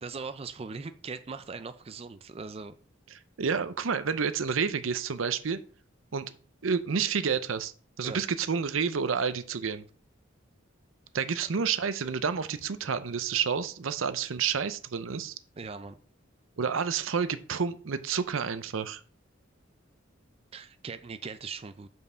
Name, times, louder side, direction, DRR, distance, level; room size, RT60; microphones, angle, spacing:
voice 1, 0.0-2.8 8.0-8.2 15.6-16.0 20.5-21.9, right 4 dB, 30° right, 10 dB, 0.4 m, -40 dB
voice 2, 3.1-5.6 6.1-6.3 6.6-9.8 11.1-15.3 16.6-19.0, right 6 dB, 85° right, 12 dB, 0.6 m, -29 dB
5.4 x 4.6 x 6.2 m, 0.43 s
head